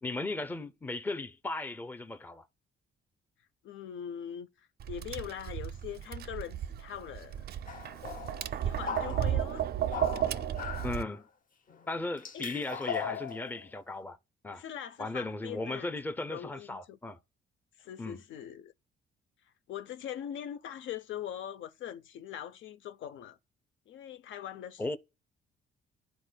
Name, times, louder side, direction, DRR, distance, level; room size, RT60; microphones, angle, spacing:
voice 1, 0.0-2.5 10.8-11.3 11.9-14.2 14.4-14.6 15.0-17.2 18.0-18.2 24.8-25.0, left 2 dB, 10° left, 0.5 m, -36 dB
voice 2, 3.6-7.5 8.4-9.6 12.3-12.5 13.1-13.2 14.5-15.9 16.3-17.0 17.8-18.7 19.7-23.4 23.9-25.0, left 10 dB, 75° left, 0.6 m, -42 dB
Tap, 4.8-11.0, right 11 dB, 55° right, 0.4 m, -34 dB
sound 1, 7.7-9.5 9.9-11.1 11.7-11.9 12.2-13.6, left 6 dB, 45° left, 0.8 m, -39 dB
11.5 x 4.3 x 2.2 m
cardioid pair, 90°, 20 cm